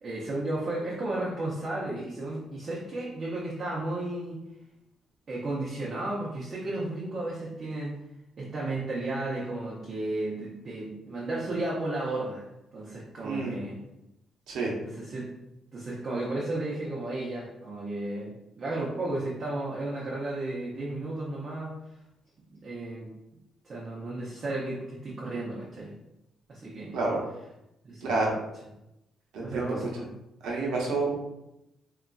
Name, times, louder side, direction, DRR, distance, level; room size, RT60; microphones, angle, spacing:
voice 1, 0.0-4.4 5.3-8.0 8.4-12.5 12.7-13.8 14.8-15.3 15.7-21.7 22.5-23.1 23.6-25.9 26.5-27.0 27.8-28.1 29.4-30.1, right 2 dB, 45° right, -5 dB, 0.6 m, -33 dB
voice 2, 13.2-13.5 14.5-14.7 26.9-27.2 28.0-28.4 29.3-29.8 30.4-31.2, right 3 dB, 85° right, -3 dB, 0.8 m, -28 dB
3.0 x 2.5 x 2.2 m, 0.89 s
cardioid pair, 90°, 0 cm